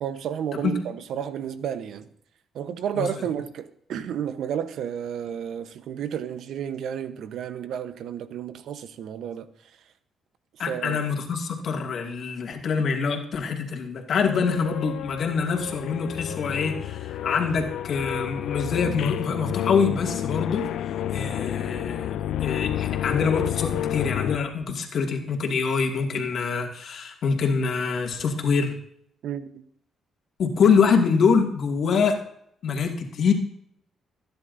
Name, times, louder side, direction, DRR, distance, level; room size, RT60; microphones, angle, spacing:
voice 1, 0.0-2.1 2.5-9.5 10.7-11.0 29.2-29.6, right 9 dB, 75° right, 1.0 m, -31 dB
voice 2, 10.6-28.8 30.4-32.2 32.6-33.3, left 5 dB, 60° left, 2.2 m, -25 dB
sound 1, 14.2-24.4, left 11 dB, 80° left, 0.5 m, -30 dB
22.5 x 10.5 x 2.7 m
cardioid pair, 90°, 0 cm